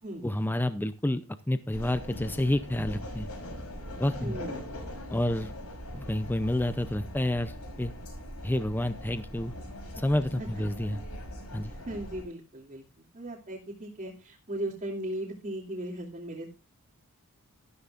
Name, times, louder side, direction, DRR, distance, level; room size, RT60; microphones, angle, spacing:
voice 1, 0.2-3.3 4.0-4.4 5.1-5.5 5.9-7.9 8.4-9.5 10.0-11.0 11.5-11.7, left 1 dB, 10° left, 11 dB, 0.5 m, -29 dB
sound 1, 1.7-12.2, equal, 80° left, 5.9 m, -41 dB
voice 2, 4.2-4.6 10.4-10.5 11.7-16.5, right 1 dB, 35° right, -4 dB, 2.7 m, -37 dB
13.5 x 12.5 x 2.5 m, 0.30 s
head